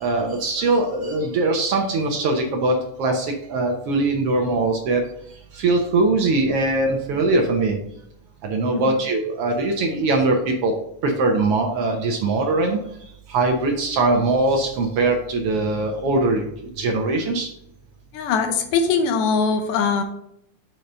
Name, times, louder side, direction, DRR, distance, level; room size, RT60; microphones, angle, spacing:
voice 1, 0.0-5.0 5.6-7.8 8.4-10.7 11.0-12.8 13.3-16.5 16.8-17.5, right 2 dB, 65° right, 2 dB, 1.5 m, -21 dB
voice 2, 18.1-20.0, left 5 dB, 90° left, 6 dB, 2.5 m, -21 dB
6.8 x 4.5 x 5.5 m, 0.74 s
omnidirectional pair, 3.6 m